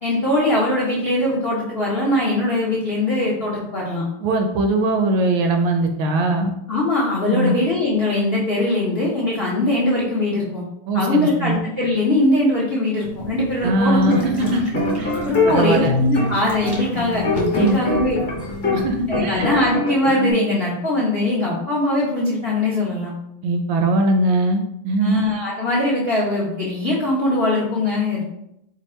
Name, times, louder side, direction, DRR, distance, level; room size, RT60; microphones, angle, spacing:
voice 1, 0.0-4.0 6.7-10.6 10.9-14.1 15.2-18.2 19.1-23.1 25.0-28.2, left 1 dB, 80° left, -5 dB, 0.5 m, -21 dB
voice 2, 4.2-6.5 7.3-7.5 10.9-11.6 13.6-14.7 14.9-15.1 15.5-15.9 17.6-17.8 18.7-19.5 23.4-25.2, right 2 dB, 75° right, 5 dB, 1.2 m, -20 dB
sound 1, 13.0-19.7, equal, 25° right, 0.5 m, -34 dB
sound 2, 14.1-18.8 19.1-20.3, left 3 dB, 40° left, 0.8 m, -23 dB
4.4 x 2.5 x 4.3 m, 0.79 s
omnidirectional pair, 2.4 m